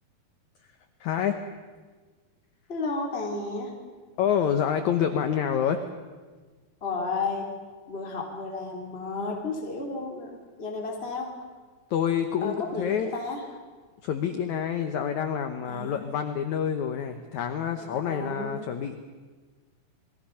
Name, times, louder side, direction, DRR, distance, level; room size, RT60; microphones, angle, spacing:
voice 1, 1.0-1.4 4.2-5.8 11.9-13.1 14.0-18.9, left 8 dB, 75° left, 7 dB, 1.8 m, -27 dB
voice 2, 2.7-3.7 6.8-7.5 7.9-11.3 12.4-13.4 15.7-16.2 17.7-18.7, left 3 dB, 15° left, 0 dB, 2.6 m, -33 dB
28.0 x 21.5 x 5.7 m, 1.4 s
omnidirectional pair, 4.7 m